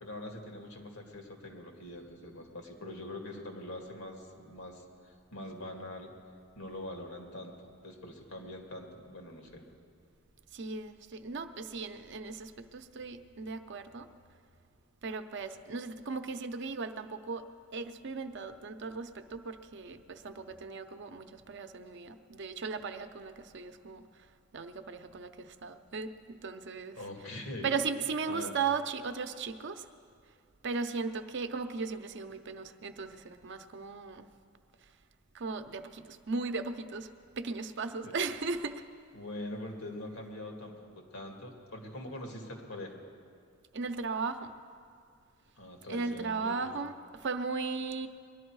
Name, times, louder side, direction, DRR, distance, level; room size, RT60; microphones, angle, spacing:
voice 1, 0.0-6.1 6.6-9.6 26.9-27.7 28.3-28.5 38.0-38.1 39.1-43.0 45.6-46.7, left 1 dB, 90° left, 2 dB, 2.0 m, -43 dB
voice 2, 10.5-14.1 15.0-17.5 17.7-24.3 24.5-27.0 27.6-29.9 30.6-34.3 35.3-37.1 37.4-38.8 43.7-44.5 45.9-48.1, right 4 dB, 60° right, 8 dB, 0.7 m, -37 dB
20.5 x 11.5 x 4.7 m, 2.2 s
head